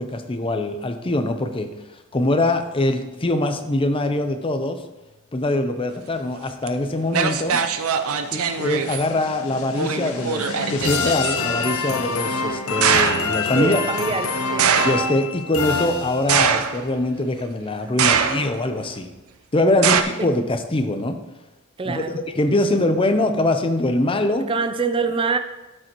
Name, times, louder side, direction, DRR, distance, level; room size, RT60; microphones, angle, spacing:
voice 1, 0.0-1.7 2.1-4.8 5.3-7.6 8.3-13.8 14.8-19.1 19.5-21.2 21.8-24.5, left 1 dB, 25° left, 7 dB, 0.6 m, -23 dB
sound 1, 6.7-6.8 7.1-9.1 9.8-11.3 12.8-13.4 14.6-15.2 16.3-17.0 18.0-18.6 19.8-20.0, right 7 dB, 80° right, 0.6 m, -21 dB
sound 2, 7.9-16.6, left 4 dB, 90° left, 0.7 m, -27 dB
voice 2, 13.6-14.8 19.6-19.8 20.2-20.3 21.8-22.2 22.5-22.8 24.5-25.4, right 4 dB, 25° right, 9 dB, 0.5 m, -25 dB
11.0 x 6.6 x 3.0 m, 1.1 s
head